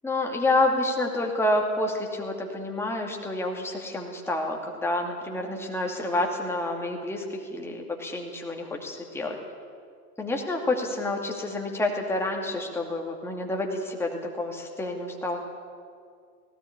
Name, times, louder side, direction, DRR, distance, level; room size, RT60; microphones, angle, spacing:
voice 1, 0.0-9.4 10.2-15.4, left 2 dB, 5° left, 1 dB, 2.5 m, -28 dB
18.5 x 17.5 x 8.5 m, 2.1 s
figure-of-eight pair, 105°, 49 cm